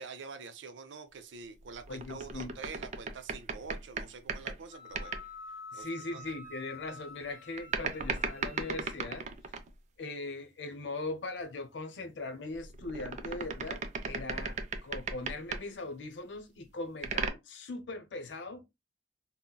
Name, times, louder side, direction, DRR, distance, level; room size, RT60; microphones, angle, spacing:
voice 1, 0.0-5.2 5.8-5.9 6.1-6.2, right 4 dB, 90° right, 0.5 m, -46 dB
sound 1, 1.6-4.6 4.9-5.3 7.6-9.7 12.5-15.6 17.0-17.3, right 5 dB, 40° right, 0.4 m, -36 dB
voice 2, 1.9-2.5 5.7-9.3 10.0-18.6, left 2 dB, 80° left, 0.7 m, -40 dB
Wind instrument woodwind instrument, 4.7-9.0, left 2 dB, 40° left, 1.6 m, -48 dB
3.8 x 2.1 x 2.2 m
head